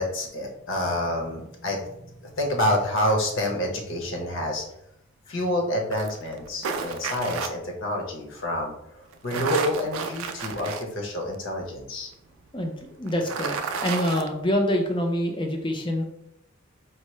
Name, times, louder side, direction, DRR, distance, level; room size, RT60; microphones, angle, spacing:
voice 1, 0.0-4.6 5.3-12.1, left 1 dB, 70° left, 1 dB, 0.8 m, -28 dB
sound 1, 5.9-7.5 9.1-10.8 11.3-11.4 13.1-14.3, right 5 dB, 80° right, 0.4 m, -31 dB
voice 2, 12.5-13.6 13.8-16.0, equal, 25° left, 3 dB, 0.5 m, -26 dB
4.5 x 2.0 x 3.1 m, 0.78 s
head